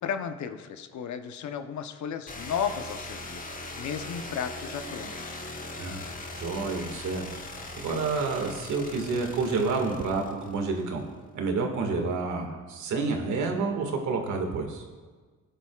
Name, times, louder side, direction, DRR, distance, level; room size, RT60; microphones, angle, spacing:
voice 1, 0.0-3.4 3.8-5.4, left 7 dB, 70° left, 8 dB, 0.9 m, -34 dB
sound 1, 2.3-11.0, left 2 dB, 30° left, 1.2 m, -40 dB
voice 2, 6.3-11.0 11.3-14.8, right 4 dB, 75° right, 3 dB, 2.0 m, -29 dB
17.5 x 10.0 x 2.4 m, 1.4 s
cardioid pair, 90°, 30 cm